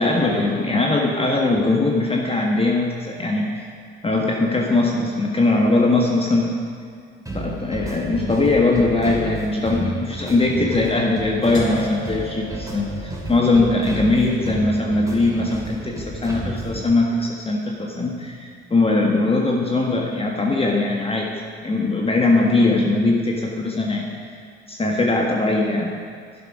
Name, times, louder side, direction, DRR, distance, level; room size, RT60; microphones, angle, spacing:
voice 1, 0.0-3.7 4.0-6.6 7.3-21.3 21.6-24.1 24.7-25.9, left 2 dB, 20° left, -1 dB, 1.5 m, -20 dB
sound 1, 7.3-16.8, right 2 dB, 10° right, 2.6 m, -32 dB
sound 2, 11.5-17.5, equal, 40° left, 1.9 m, -37 dB
12.0 x 11.0 x 5.0 m, 2.2 s
figure-of-eight pair, 55°, 31 cm